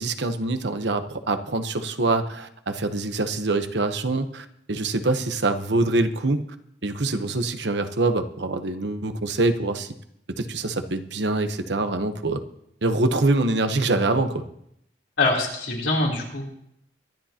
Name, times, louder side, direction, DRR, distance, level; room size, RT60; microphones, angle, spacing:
voice 1, 0.0-6.4 6.8-9.9 10.4-12.4 12.8-14.4, right 2 dB, 75° right, 8 dB, 1.0 m, -24 dB
voice 2, 15.2-16.4, left 2 dB, 80° left, -2 dB, 3.4 m, -24 dB
24.0 x 10.5 x 2.9 m, 0.74 s
head